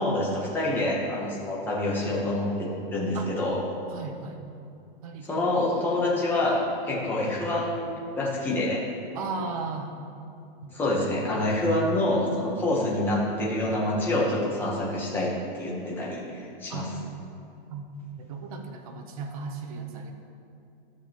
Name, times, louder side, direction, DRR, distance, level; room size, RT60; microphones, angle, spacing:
voice 1, 0.0-3.6 5.2-8.8 10.7-16.9, left 1 dB, 5° left, -4 dB, 0.8 m, -27 dB
voice 2, 3.9-4.4 5.0-5.4 9.1-9.9 10.6-10.8 16.7-16.9 17.7-17.9 18.2-20.1, right 4 dB, 35° right, 4 dB, 0.8 m, -36 dB
12.5 x 7.0 x 2.9 m, 2.6 s
supercardioid pair, 175°, 30 cm